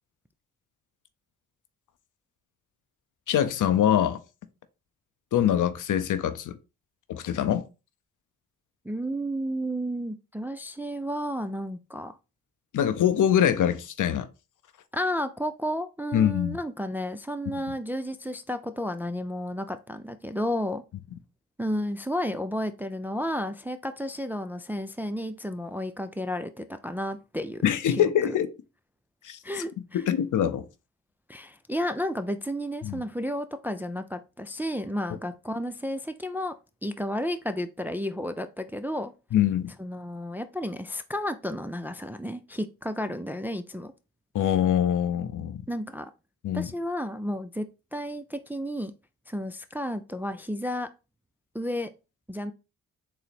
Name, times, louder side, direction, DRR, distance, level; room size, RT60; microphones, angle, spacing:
voice 1, 3.3-4.2 5.3-6.6 7.1-7.7 12.7-14.3 16.1-16.6 27.6-28.5 29.2-29.4 29.9-30.7 32.8-33.0 39.3-39.7 44.3-45.7 46.4-46.7, left 10 dB, 60° left, 0.6 m, -24 dB
voice 2, 8.8-12.1 14.9-20.8 21.6-28.4 29.4-30.0 31.3-36.5 36.8-39.1 39.8-43.9 45.7-46.1 46.5-47.7 47.9-48.9 49.3-50.9 51.5-51.9 52.3-52.5, equal, 5° right, 0.3 m, -32 dB
3.9 x 2.1 x 4.0 m
supercardioid pair, 45°, 35 cm